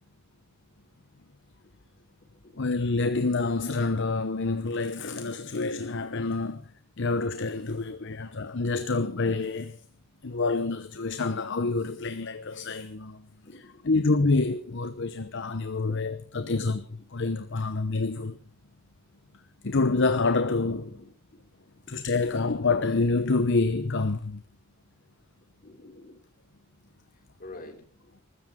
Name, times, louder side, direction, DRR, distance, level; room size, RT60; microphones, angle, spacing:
voice 1, 2.6-6.7 7.0-9.8 10.2-13.2 13.5-18.4 19.6-21.0 21.9-24.4, left 3 dB, 65° left, 1.0 m, -27 dB
voice 2, 13.4-13.9 15.9-16.0 16.3-16.7 20.8-21.4 25.6-26.2 27.4-28.1, left 2 dB, 45° left, 3.1 m, -48 dB
23.0 x 13.5 x 3.8 m
head